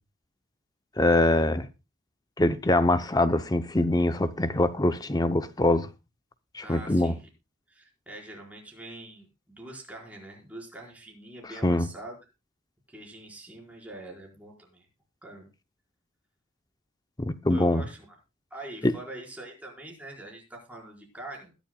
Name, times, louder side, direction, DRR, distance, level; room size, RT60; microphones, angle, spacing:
voice 1, 1.0-1.7 2.4-5.9 6.5-7.1 11.6-11.9 17.2-17.8 18.8-18.9, left 1 dB, 20° left, 0.7 m, -23 dB
voice 2, 6.6-7.3 7.7-12.2 12.9-14.9 15.2-15.5 17.5-18.2 18.5-21.5, right 2 dB, 5° right, 4.8 m, -44 dB
21.0 x 10.5 x 2.3 m
head